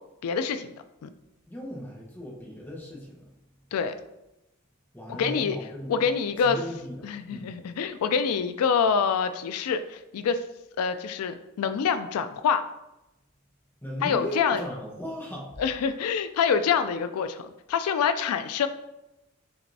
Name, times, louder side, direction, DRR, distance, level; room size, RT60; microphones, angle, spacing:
voice 1, 0.2-0.7 1.0-1.1 3.7-3.9 5.1-5.6 5.9-6.6 7.0-10.4 10.8-12.6 14.0-14.6 15.6-18.7, left 6 dB, 90° left, 10 dB, 0.3 m, -26 dB
voice 2, 1.5-3.3 4.9-6.1 6.4-7.5 13.8-15.5, equal, 10° left, -4 dB, 0.9 m, -37 dB
5.9 x 3.4 x 2.7 m, 0.93 s
head